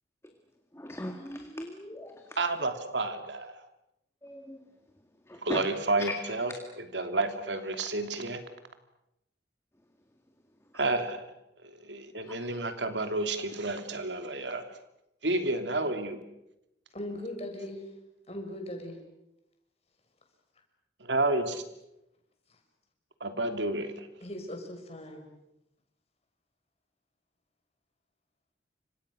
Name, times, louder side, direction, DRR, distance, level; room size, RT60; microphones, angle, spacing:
voice 1, 0.7-2.2 4.2-4.6 5.3-5.6, left 1 dB, 15° left, 4 dB, 2.1 m, -39 dB
voice 2, 2.4-3.5 5.4-8.4 10.7-11.3 11.6-14.6 15.2-16.2 21.0-21.6 23.2-24.1, right 2 dB, 85° right, 7 dB, 2.9 m, -30 dB
voice 3, 16.9-17.8 18.3-19.0 22.5-22.6 24.2-25.3, left 1 dB, 35° left, 3 dB, 6.4 m, -39 dB
30.0 x 26.0 x 6.5 m, 0.87 s
head